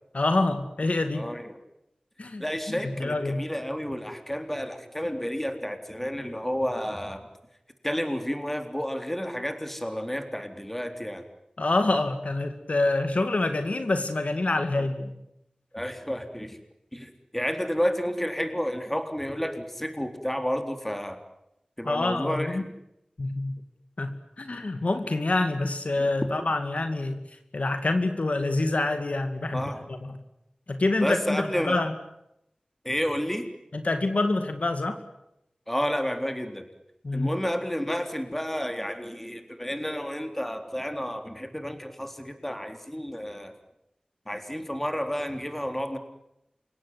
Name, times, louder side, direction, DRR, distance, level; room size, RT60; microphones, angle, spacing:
voice 1, 0.1-1.3 2.2-3.5 11.6-15.2 21.8-22.6 23.2-23.6 24.0-27.2 27.5-29.6 29.9-30.2 30.7-31.9 33.7-35.0 37.0-37.3, left 2 dB, 70° left, 8 dB, 2.2 m, -26 dB
voice 2, 1.1-1.5 2.4-7.3 7.8-11.2 14.8-14.9 15.7-16.6 16.9-21.2 21.8-22.7 29.5-29.8 31.0-31.8 32.8-33.5 35.7-36.7 37.1-43.5 44.3-46.0, equal, 10° left, 6 dB, 3.8 m, -31 dB
30.0 x 17.0 x 9.8 m, 0.83 s
wide cardioid pair, 60°, 2 cm